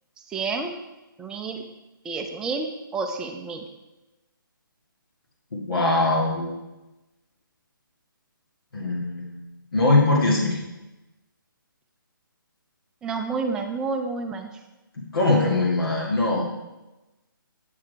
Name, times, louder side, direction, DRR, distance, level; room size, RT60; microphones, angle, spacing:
voice 1, 0.3-0.7 1.2-1.6 2.0-3.6 13.0-14.5, right 4 dB, 5° right, 4 dB, 0.4 m, -29 dB
voice 2, 5.5-6.5 8.7-9.5 9.7-10.6 15.0-16.4, left 2 dB, 85° left, -3 dB, 1.7 m, -22 dB
8.4 x 4.9 x 4.5 m, 1.0 s
hypercardioid pair, 150°, 12 cm